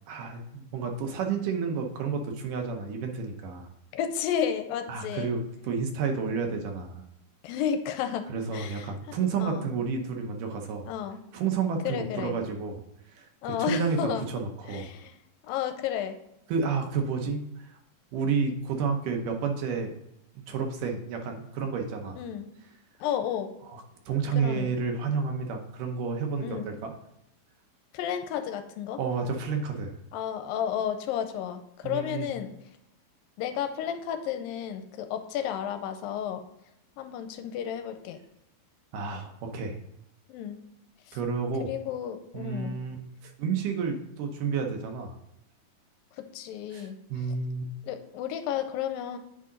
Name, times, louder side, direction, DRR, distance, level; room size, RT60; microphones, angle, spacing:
voice 1, 0.1-3.7 4.9-7.0 8.3-10.9 11.3-12.8 13.1-14.9 16.5-17.8 18.1-19.9 20.5-22.2 23.7-26.9 29.0-29.9 31.8-32.3 38.9-39.8 41.1-41.7 42.3-43.0 43.2-45.2 46.7-47.7, right 5 dB, 75° right, 3 dB, 2.3 m, -31 dB
voice 2, 3.9-5.3 6.3-6.4 7.4-8.9 9.4-9.7 10.9-11.2 11.8-12.4 13.4-14.3 14.7-15.1 15.4-16.2 22.2-22.5 23.0-23.5 24.4-24.7 26.4-26.7 27.9-29.0 30.1-32.5 33.4-36.4 37.0-38.2 40.3-40.6 41.1-41.2 41.7-42.8 46.2-47.0 47.8-49.2, left 9 dB, 80° left, 8 dB, 2.3 m, -32 dB
8.5 x 4.8 x 3.8 m, 0.82 s
omnidirectional pair, 4.1 m